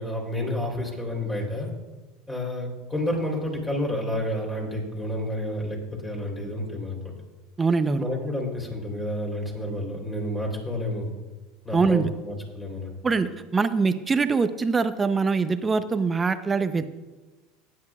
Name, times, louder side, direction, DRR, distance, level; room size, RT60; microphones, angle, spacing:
voice 1, 0.0-1.7 2.3-7.1 8.0-11.1 11.6-12.9, left 1 dB, 15° left, -1 dB, 3.6 m, -30 dB
voice 2, 7.6-8.1 11.7-12.1 13.0-16.9, right 4 dB, 20° right, 10 dB, 0.7 m, -23 dB
17.5 x 9.5 x 2.4 m, 1.2 s
supercardioid pair, 100°, 0 cm